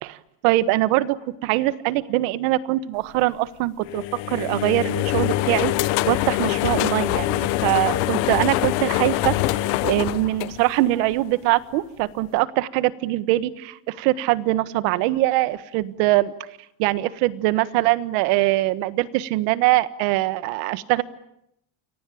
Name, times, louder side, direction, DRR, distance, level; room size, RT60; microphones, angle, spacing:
voice 1, 0.4-1.2 1.4-5.7 6.1-9.3 9.8-16.3 16.8-21.0, right 17 dB, 80° right, 14 dB, 1.6 m, -22 dB
sound 1, 3.8-11.1, left 16 dB, 85° left, 1.6 m, -24 dB
29.0 x 23.5 x 8.7 m, 0.79 s
cardioid pair, 145°, 49 cm